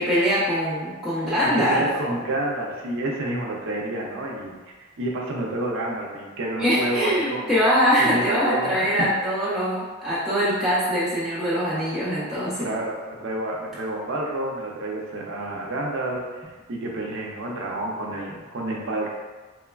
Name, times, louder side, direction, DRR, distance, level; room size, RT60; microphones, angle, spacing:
voice 1, 0.0-1.9 6.6-12.7, equal, ahead, -11 dB, 0.4 m, -23 dB
voice 2, 1.2-4.6 5.0-7.6 8.0-9.1 12.6-16.4 16.7-19.1, right 1 dB, 60° right, -2 dB, 0.5 m, -29 dB
3.0 x 2.2 x 2.2 m, 1.3 s
head